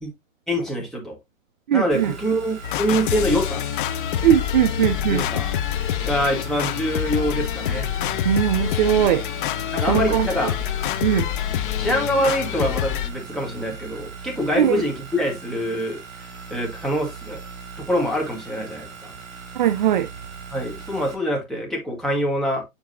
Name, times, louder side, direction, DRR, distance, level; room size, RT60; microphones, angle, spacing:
voice 1, 0.5-1.2 1.7-3.6 5.1-5.5 6.0-7.9 9.7-10.6 11.8-16.0 16.5-17.4 17.8-19.1 20.5-22.6, equal, ahead, 1.7 m, -25 dB
voice 2, 1.7-2.1 4.2-5.2 8.3-9.2 9.9-10.3 11.0-11.2 14.6-14.8 19.6-20.1, right 11 dB, 35° right, 0.4 m, -19 dB
sound 1, 1.9-21.1, right 5 dB, 60° right, 3.1 m, -40 dB
sound 2, 2.6-13.1, left 11 dB, 40° left, 0.5 m, -26 dB
7.6 x 4.7 x 2.6 m
hypercardioid pair, 150°, 41 cm